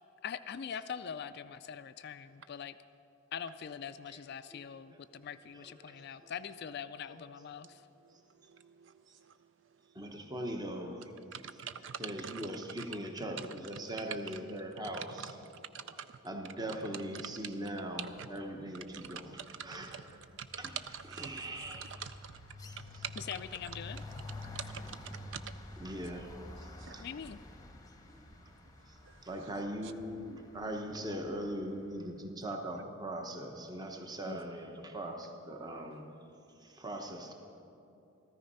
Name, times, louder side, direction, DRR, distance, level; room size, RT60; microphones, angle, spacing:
voice 1, 0.2-2.8 3.3-7.9 16.7-16.9 23.2-24.0 27.0-27.4 34.3-34.4, left 7 dB, 50° left, 0.3 m, -43 dB
voice 2, 8.0-9.4 11.3-12.5 12.8-12.9 13.4-13.5 14.9-16.2 17.1-17.6 18.0-18.3 18.9-20.1 20.4-20.5 20.8-21.2 21.7-23.3 24.4-25.8 26.8-27.0 29.0-29.5 29.8-29.9, right 8 dB, 60° right, 0.3 m, -46 dB
voice 3, 9.9-11.1 12.0-15.3 16.2-20.0 20.6-20.7 21.2-21.9 25.8-27.0 28.1-28.2 28.9-29.0 29.2-36.1 36.6-37.3, right 1 dB, 20° right, 0.9 m, -40 dB
sound 1, 17.9-18.3 18.6-31.7, left 2 dB, 15° left, 0.9 m, -49 dB
14.0 x 13.5 x 5.5 m
head